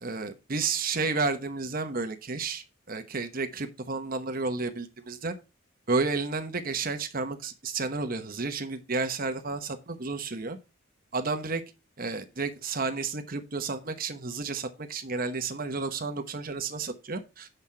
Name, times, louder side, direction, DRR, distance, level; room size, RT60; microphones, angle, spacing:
voice 1, 0.0-5.3 5.9-10.6 11.1-11.6 12.0-17.5, right 4 dB, 45° right, 1.0 m, -31 dB
8.0 x 5.8 x 4.5 m
head